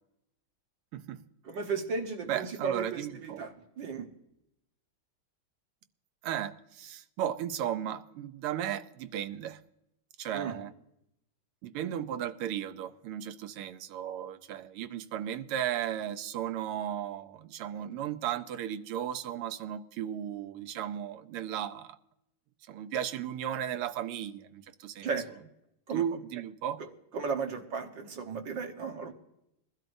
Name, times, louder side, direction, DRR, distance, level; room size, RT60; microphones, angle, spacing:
voice 1, 1.5-4.1 10.3-10.6 25.0-25.3 25.9-26.0 26.8-26.9 27.1-29.1, right 5 dB, 60° right, 1.9 m, -35 dB
voice 2, 2.3-3.4 6.2-9.6 10.2-10.7 11.6-22.0 22.7-25.1 25.9-26.8, right 10 dB, 85° right, 1.6 m, -35 dB
21.5 x 12.5 x 2.6 m
omnidirectional pair, 2.4 m